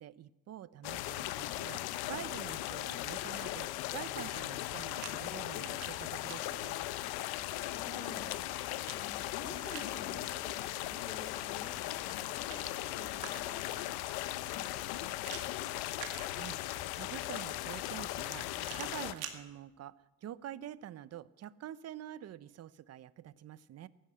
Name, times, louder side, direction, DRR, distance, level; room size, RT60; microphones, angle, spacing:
voice 1, 0.0-6.8 16.3-23.9, right 11 dB, 45° right, 18 dB, 0.7 m, -47 dB
sound 1, 0.8-19.1, left 15 dB, 80° left, 0.8 m, -38 dB
sound 2, 4.1-5.1 5.5-6.4 8.1-10.0 11.9-13.7 15.2-16.8 18.6-19.4, right 9 dB, 80° right, 2.1 m, -48 dB
voice 2, 7.2-13.8 14.1-15.7, left 2 dB, 20° left, 1 dB, 3.0 m, -51 dB
14.5 x 11.5 x 7.9 m, 1.1 s
supercardioid pair, 90°, 37 cm